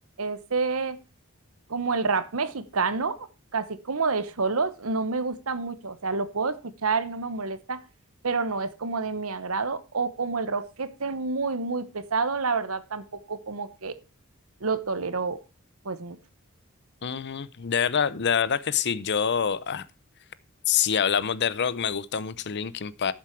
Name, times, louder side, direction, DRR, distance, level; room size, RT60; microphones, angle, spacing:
voice 1, 0.2-1.0 1.7-7.8 8.2-14.0 14.6-15.4 15.8-16.2, right 4 dB, 90° right, 1.0 m, -28 dB
voice 2, 17.0-19.8 20.7-23.1, left 7 dB, 55° left, 0.7 m, -26 dB
12.5 x 7.3 x 4.6 m
head